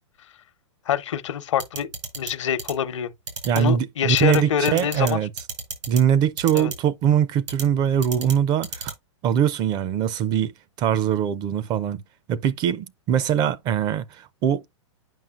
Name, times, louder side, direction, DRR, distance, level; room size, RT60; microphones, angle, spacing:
voice 1, 0.9-1.9 2.2-3.1 3.5-5.2 6.5-6.7, left 9 dB, 80° left, 0.9 m, -25 dB
sound 1, 1.6-2.3 2.6-2.7 3.3-3.6 4.2-4.4 4.7-5.1 5.4-6.0 6.4-6.7 7.5-7.6 8.0-8.3 8.6-8.9, right 5 dB, 85° right, 4.5 m, -31 dB
voice 2, 3.4-5.3 5.9-8.9 9.2-10.5 10.8-12.0 12.3-14.6, right 9 dB, 25° right, 0.4 m, -22 dB
9.0 x 5.5 x 2.4 m
hypercardioid pair, 140°, 16 cm